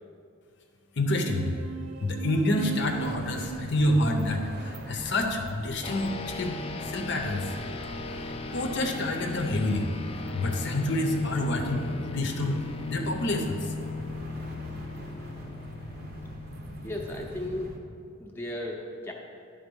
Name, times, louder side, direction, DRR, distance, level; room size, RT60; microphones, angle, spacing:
voice 1, 1.0-1.6 2.0-6.6 6.9-7.6 8.5-9.9 10.3-12.6 12.9-13.7, left 1 dB, 55° left, 3 dB, 0.7 m, -28 dB
sound 1, 1.0-6.0, right 8 dB, 75° right, 0.4 m, -40 dB
sound 2, 2.7-17.8, right 1 dB, 45° right, 0.7 m, -44 dB
sound 3, 5.8-18.0, left 3 dB, 25° left, 0.3 m, -38 dB
voice 2, 16.8-17.7 18.2-19.1, left 1 dB, 10° left, -2 dB, 0.7 m, -35 dB
10.5 x 3.8 x 5.4 m, 2.3 s
head